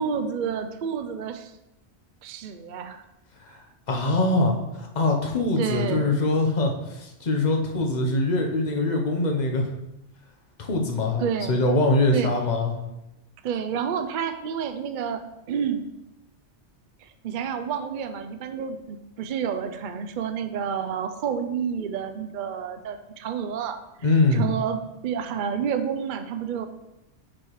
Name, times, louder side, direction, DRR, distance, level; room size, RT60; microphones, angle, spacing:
voice 1, 0.0-1.5 2.2-3.0 5.6-6.1 11.2-11.6 12.1-12.3 13.4-15.8 17.0-23.8 24.3-26.7, right 7 dB, 55° right, 8 dB, 0.6 m, -29 dB
voice 2, 3.9-9.7 10.6-12.7 24.0-24.5, left 2 dB, 40° left, 2 dB, 1.0 m, -23 dB
6.1 x 4.8 x 4.7 m, 0.91 s
omnidirectional pair, 1.2 m